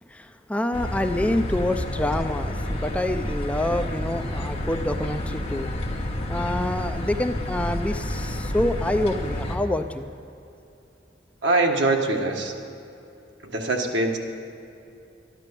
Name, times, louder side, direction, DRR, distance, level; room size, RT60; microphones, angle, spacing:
voice 1, 0.1-5.7 6.3-10.1, left 1 dB, 5° left, 6 dB, 0.4 m, -27 dB
sound 1, 0.7-9.6, left 1 dB, 35° left, 1.5 m, -29 dB
voice 2, 11.4-12.5 13.4-14.2, right 2 dB, 75° right, 2 dB, 1.4 m, -23 dB
12.5 x 10.5 x 6.8 m, 2.7 s
head